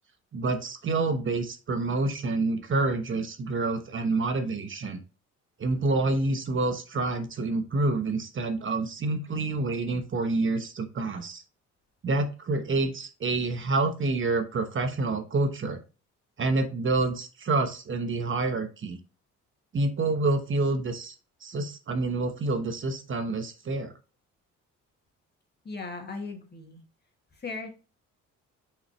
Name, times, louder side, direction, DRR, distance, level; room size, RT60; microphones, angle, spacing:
voice 1, 0.3-5.0 5.6-11.4 12.0-15.8 16.4-19.0 19.7-21.1 21.4-23.9, right 3 dB, 40° right, 7 dB, 1.1 m, -28 dB
voice 2, 25.6-26.8 27.3-27.7, left 3 dB, 35° left, 2 dB, 2.2 m, -37 dB
5.9 x 5.2 x 3.2 m, 0.32 s
cardioid pair, 90°, 30 cm